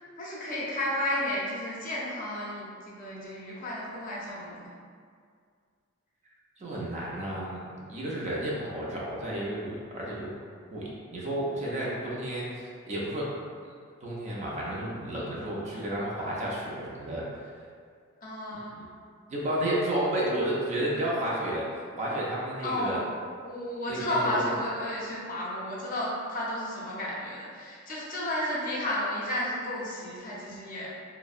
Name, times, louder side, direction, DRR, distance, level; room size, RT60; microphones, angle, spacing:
voice 1, 0.2-4.7 18.2-18.7 22.6-23.1 23.4-30.9, left 1 dB, 40° left, -6 dB, 0.6 m, -32 dB
voice 2, 6.6-10.4 10.7-13.3 13.6-13.7 14.0-17.3 18.7-18.9 19.3-21.7 22.0-23.0 23.9-24.5, right 1 dB, 35° right, -5 dB, 0.4 m, -32 dB
2.6 x 2.0 x 2.4 m, 2.1 s
head